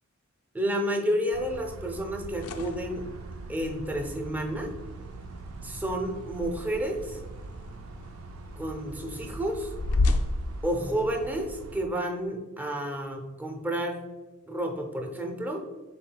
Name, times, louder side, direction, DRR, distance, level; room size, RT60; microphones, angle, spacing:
voice 1, 0.5-3.1 3.5-4.7 5.6-7.2 8.6-9.7 10.6-14.1 14.5-15.6, equal, 10° right, 3 dB, 0.5 m, -30 dB
sound 1, 1.3-11.9, right 3 dB, 70° right, 0.3 m, -43 dB
sound 2, 2.3-11.5, left 2 dB, 80° left, 0.4 m, -34 dB
5.8 x 4.0 x 2.2 m, 1.2 s
head